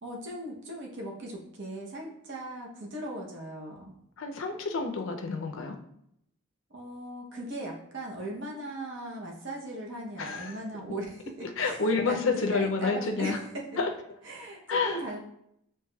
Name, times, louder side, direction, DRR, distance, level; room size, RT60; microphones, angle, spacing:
voice 1, 0.0-3.9 6.7-11.8 12.0-13.6 14.2-15.2, right 1 dB, 55° right, -1 dB, 0.7 m, -38 dB
voice 2, 4.2-5.8 10.2-10.6 11.6-13.4 13.8-13.9 14.7-15.0, left 4 dB, 60° left, 4 dB, 0.4 m, -29 dB
4.7 x 2.9 x 2.2 m, 0.74 s
head